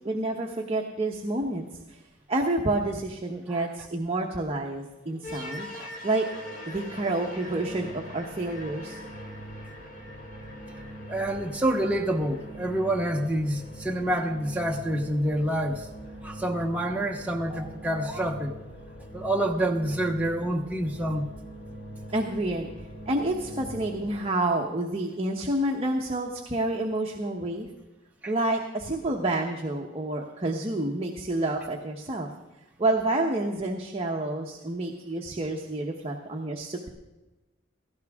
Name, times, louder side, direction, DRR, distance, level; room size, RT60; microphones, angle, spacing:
voice 1, 0.0-2.0 2.3-5.7 6.0-6.3 6.7-9.0 22.1-22.7 23.1-27.7 28.3-32.3 32.8-36.9, right 2 dB, 30° right, 1 dB, 1.0 m, -29 dB
sound 1, 5.2-24.2, equal, 40° left, 2.8 m, -42 dB
voice 2, 11.1-15.9 16.2-18.5 19.1-21.3 28.2-28.3, right 1 dB, 5° right, 0 dB, 0.8 m, -27 dB
17.0 x 14.5 x 3.6 m, 1.1 s
head